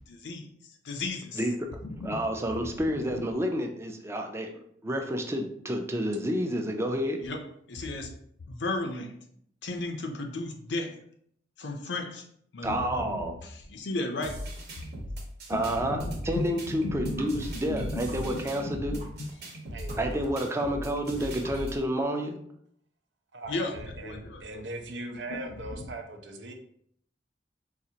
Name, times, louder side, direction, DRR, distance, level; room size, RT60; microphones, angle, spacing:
voice 1, 0.1-0.5 0.8-1.4 2.0-2.1 2.6-2.7 3.0-3.2 7.2-8.1 8.5-9.2 9.6-11.0 11.6-12.2 12.5-14.4 15.5-16.1 16.5-19.3 23.5-24.6 25.3-25.4, left 2 dB, 85° left, 4 dB, 0.6 m, -35 dB
voice 2, 1.4-1.7 2.0-4.5 4.8-7.2 12.6-13.3 15.5-19.0 20.0-22.4, equal, 15° right, 3 dB, 0.4 m, -29 dB
sound 1, 14.2-21.8, equal, 65° right, 0.9 m, -39 dB
sound 2, 17.2-17.3 17.6-17.7 18.1-18.2 18.6-18.7 19.0-19.1 19.4-19.5 19.9-20.0 20.3-20.4 20.6-20.7 21.0-21.1 21.4-21.8, right 2 dB, 35° right, 0.9 m, -48 dB
voice 3, 23.3-26.5, right 2 dB, 90° right, 4 dB, 0.6 m, -40 dB
4.1 x 2.4 x 2.8 m, 0.67 s
head